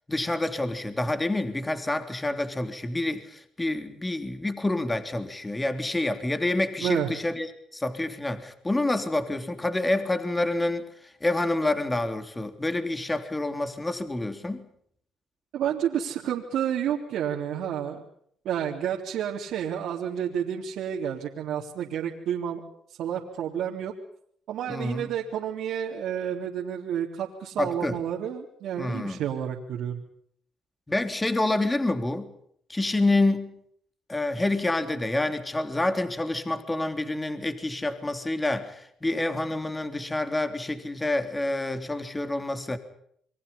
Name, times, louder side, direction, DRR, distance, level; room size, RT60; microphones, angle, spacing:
voice 1, 0.1-14.7 24.7-25.1 27.6-28.0 28.8-29.2 30.9-32.3 32.7-33.6 34.1-42.8, left 2 dB, 15° left, 8 dB, 3.4 m, -28 dB
voice 2, 15.5-18.0 18.5-22.6 22.9-23.9 24.5-30.0, right 9 dB, 80° right, -2 dB, 3.6 m, -30 dB
29.0 x 23.5 x 5.5 m, 0.67 s
cardioid pair, 90°, 0 cm